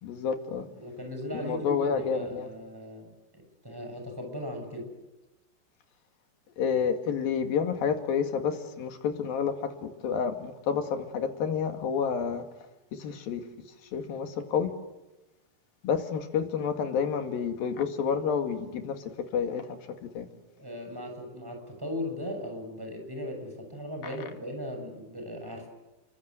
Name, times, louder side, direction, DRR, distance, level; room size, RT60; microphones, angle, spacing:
voice 1, 0.0-0.7 1.3-2.5 6.6-9.5 9.8-12.4 13.0-13.4 13.9-14.7 15.8-19.0 19.3-20.3 24.0-24.2, left 6 dB, 85° left, 6 dB, 3.9 m, -29 dB
voice 2, 0.7-4.9 20.6-25.7, left 1 dB, 5° right, 3 dB, 6.9 m, -38 dB
29.5 x 24.0 x 7.9 m, 1.1 s
omnidirectional pair, 4.1 m